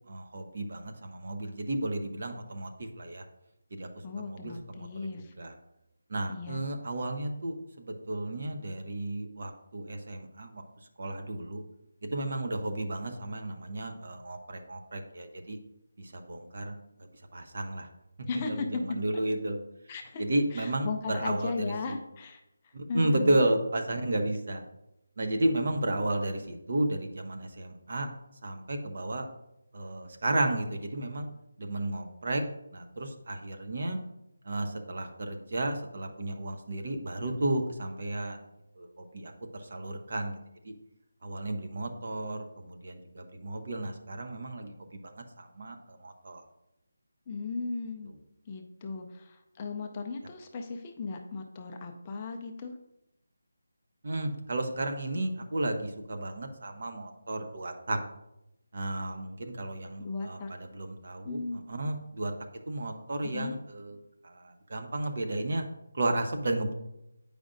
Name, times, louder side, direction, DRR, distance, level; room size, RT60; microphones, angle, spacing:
voice 1, 0.1-3.2 3.7-3.9 4.2-5.5 6.1-10.6 11.0-11.6 12.0-15.6 16.0-16.7 17.3-17.9 18.5-19.6 20.2-22.0 22.7-24.6 25.2-28.1 28.4-29.3 29.7-31.3 31.6-32.4 32.7-34.0 34.5-38.4 38.8-38.9 39.1-40.4 41.2-45.0 45.4-46.4 54.0-58.0 58.7-61.4 61.7-62.3 62.7-64.0 64.2-65.7 65.9-66.7, right 1 dB, 50° right, 5 dB, 0.8 m, -33 dB
voice 2, 4.0-5.3 6.3-6.6 18.3-18.8 19.9-20.2 20.5-23.4 47.3-48.1 48.5-52.8 60.0-60.5 61.2-61.6 63.2-63.6, left 4 dB, 20° left, 3 dB, 0.4 m, -36 dB
8.7 x 5.0 x 2.5 m, 0.87 s
figure-of-eight pair, 175°, 0 cm